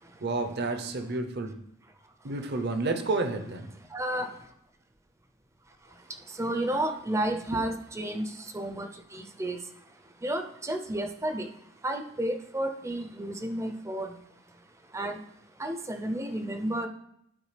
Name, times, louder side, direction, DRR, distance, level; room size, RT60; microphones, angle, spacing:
voice 1, 0.2-1.6 2.2-3.7, right 3 dB, 50° right, 7 dB, 0.7 m, -30 dB
voice 2, 3.9-4.5 5.9-9.7 10.2-14.2 14.9-15.2 15.6-16.9, right 1 dB, 15° right, 6 dB, 0.5 m, -32 dB
11.0 x 4.7 x 3.3 m, 0.74 s
head